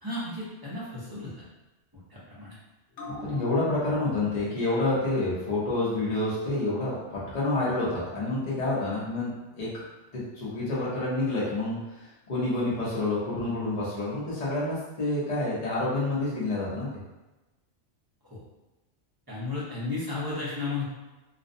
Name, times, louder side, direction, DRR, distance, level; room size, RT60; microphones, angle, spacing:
voice 1, 0.0-1.3 2.1-2.6 18.3-18.4 19.3-20.9, left 3 dB, 25° right, -8 dB, 0.6 m, -33 dB
sound 1, 2.9-9.9 10.2-10.3, left 1 dB, 85° left, 1.0 m, -47 dB
voice 2, 3.2-9.7 10.1-16.9, left 2 dB, 40° left, -7 dB, 0.7 m, -28 dB
2.5 x 2.1 x 2.5 m, 1.1 s
omnidirectional pair, 1.2 m